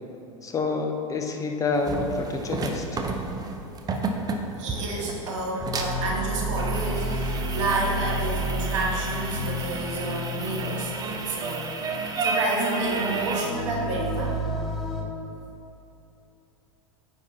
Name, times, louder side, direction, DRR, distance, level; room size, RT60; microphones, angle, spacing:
voice 1, 0.4-2.8, left 3 dB, 20° left, 3 dB, 0.7 m, -27 dB
sound 1, 1.7-13.5, right 3 dB, 20° right, 0.6 m, -32 dB
voice 2, 4.6-11.7 12.0-14.4, right 2 dB, 65° right, -2 dB, 1.5 m, -30 dB
sound 2, 5.6-15.0, equal, ahead, 1.1 m, -31 dB
9.1 x 5.4 x 2.9 m, 2.9 s
hypercardioid pair, 90°, 17 cm